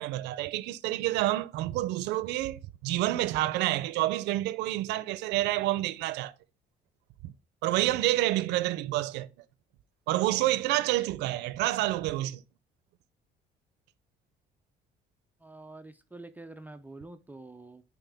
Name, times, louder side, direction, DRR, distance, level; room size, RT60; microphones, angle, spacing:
voice 1, 0.0-6.3 7.2-7.3 7.6-9.3 10.1-12.4, right 16 dB, 90° right, 0.5 m, -28 dB
voice 2, 15.4-17.8, right 2 dB, 10° right, 0.5 m, -46 dB
9.1 x 4.8 x 3.4 m
cardioid pair, 110°, 17 cm